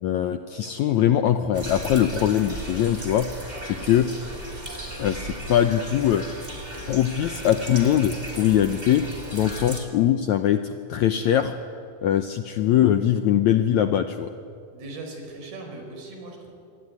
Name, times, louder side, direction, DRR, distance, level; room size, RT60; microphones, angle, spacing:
voice 1, 0.0-3.3 3.6-4.1 5.0-6.2 6.9-9.1 9.3-11.5 12.0-14.3, left 10 dB, 75° left, 8 dB, 1.7 m, -22 dB
sound 1, 1.5-9.8, right 1 dB, 10° right, 2.8 m, -36 dB
voice 2, 14.7-16.5, right 2 dB, 85° right, 2 dB, 6.6 m, -39 dB
27.0 x 22.0 x 9.7 m, 2.5 s
omnidirectional pair, 4.3 m